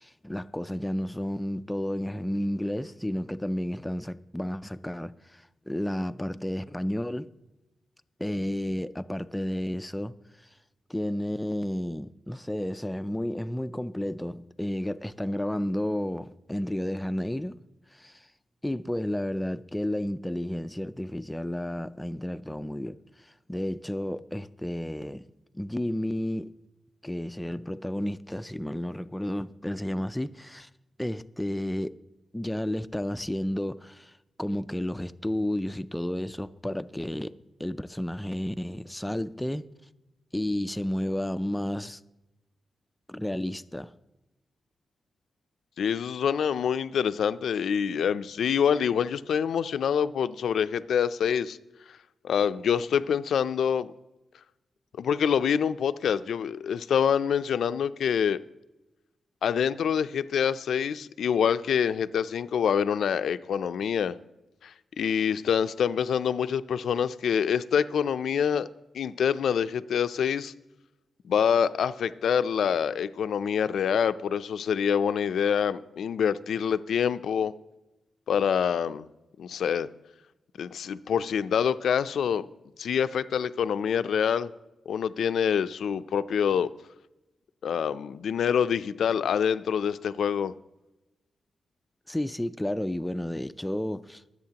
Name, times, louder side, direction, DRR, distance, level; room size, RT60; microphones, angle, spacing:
voice 1, 0.0-7.3 8.2-10.1 10.9-17.6 17.9-18.3 18.6-23.0 23.3-25.2 25.5-26.5 27.0-30.7 31.0-32.0 32.3-34.1 34.4-37.3 37.6-39.7 40.3-42.0 43.1-43.9 92.1-94.2, left 1 dB, 5° left, 0.3 m, -32 dB
voice 2, 45.8-51.6 52.2-53.9 55.0-58.4 59.4-64.2 64.6-64.7 65.0-68.7 68.9-70.5 71.3-77.5 78.3-79.1 79.4-79.9 80.6-82.5 82.8-84.5 84.9-86.7 87.6-90.5, left 7 dB, 85° left, 0.4 m, -26 dB
23.5 x 8.1 x 2.9 m
wide cardioid pair, 160°, 0 cm